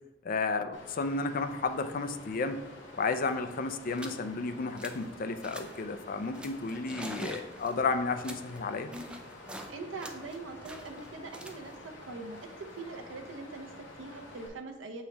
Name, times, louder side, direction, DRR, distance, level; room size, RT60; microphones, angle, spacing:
voice 1, 0.2-2.6 3.0-8.9, left 4 dB, 45° left, 9 dB, 0.5 m, -32 dB
Water, 0.7-14.5, left 2 dB, 70° left, 1.4 m, -49 dB
sound 1, 2.9-3.0 3.1-3.4 3.9-4.2 4.6-5.1 5.4-5.9 6.3-9.7 10.0-13.0, right 1 dB, 5° right, 0.5 m, -46 dB
voice 2, 9.7-15.0, right 3 dB, 80° right, 5 dB, 0.8 m, -43 dB
7.2 x 4.5 x 3.4 m, 1.1 s
head